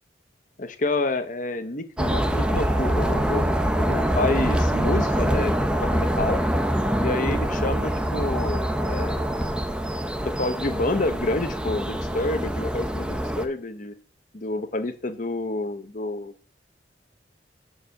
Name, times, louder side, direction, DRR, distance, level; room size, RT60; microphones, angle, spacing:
voice 1, 0.6-6.4 7.0-9.3 10.2-13.9 14.3-16.3, left 2 dB, 45° left, 9 dB, 0.8 m, -28 dB
sound 1, 2.0-13.4, equal, 5° right, 0.6 m, -24 dB
6.9 x 4.8 x 6.4 m, 0.38 s
head